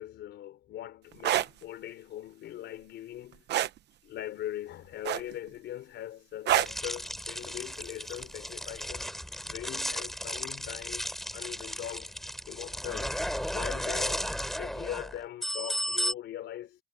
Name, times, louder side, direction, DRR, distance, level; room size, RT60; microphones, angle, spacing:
voice 1, 0.0-3.5 4.0-12.2 12.5-13.2 13.5-16.8, left 12 dB, 85° left, 3.8 m, -41 dB
sound 1, 1.1-1.5 3.5-3.8 5.0-5.5 6.5-6.8 8.2-8.4, right 12 dB, 75° right, 0.9 m, -26 dB
sound 2, 6.5-16.1, equal, ahead, 5.3 m, -35 dB
cardioid pair, 170°, 18 cm